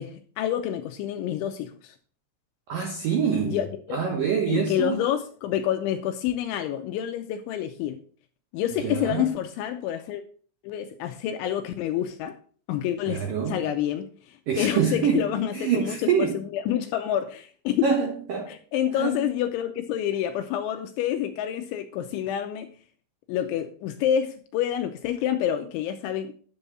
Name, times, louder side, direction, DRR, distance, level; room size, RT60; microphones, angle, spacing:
voice 1, 0.0-2.0 3.4-4.0 4.5-8.0 8.5-10.2 10.6-12.4 12.7-18.0 18.5-22.7 23.3-26.3, left 10 dB, 85° left, 7 dB, 2.8 m, -28 dB
voice 2, 2.7-3.6 3.9-5.0 8.8-9.3 13.1-13.6 14.5-15.3 15.5-16.4 17.8-18.5 18.9-19.2, right 7 dB, 80° right, 2 dB, 2.0 m, -25 dB
10.5 x 7.0 x 4.1 m, 0.44 s
omnidirectional pair, 5.9 m